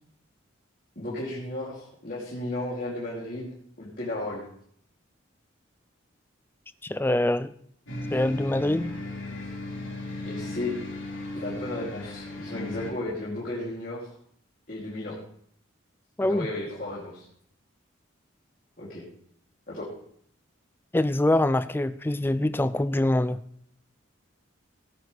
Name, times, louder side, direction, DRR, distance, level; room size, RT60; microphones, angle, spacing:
voice 1, 1.0-4.4 10.2-10.7 11.3-14.1 14.7-15.1 16.2-17.2 18.8-19.0 19.7-19.9, left 1 dB, 45° left, -7 dB, 2.8 m, -34 dB
voice 2, 6.8-7.5 8.1-8.9 16.2-16.5 20.9-23.4, left 1 dB, 10° left, 14 dB, 0.3 m, -24 dB
sound 1, 7.9-12.9, left 2 dB, 75° left, 3.2 m, -36 dB
16.5 x 9.4 x 3.3 m, 0.64 s
head